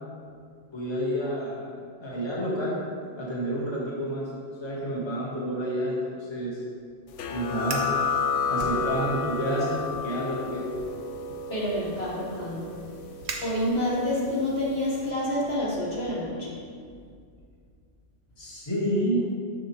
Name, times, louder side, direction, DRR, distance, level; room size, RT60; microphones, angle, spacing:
voice 1, 0.7-1.7 2.0-2.8 3.2-4.3 4.6-6.6 7.3-7.8 8.5-10.7 18.4-19.3, equal, 25° left, -6 dB, 1.4 m, -29 dB
sound 1, 7.2-14.4, left 5 dB, 80° left, 0.9 m, -31 dB
Fire, 7.6-8.0 8.6-9.3 9.7-10.0 10.7-14.1, right 4 dB, 70° right, 0.9 m, -40 dB
voice 2, 11.5-12.7 13.4-16.5, left 1 dB, 60° left, -6 dB, 1.6 m, -28 dB
6.8 x 6.7 x 3.0 m, 2.2 s
omnidirectional pair, 1.2 m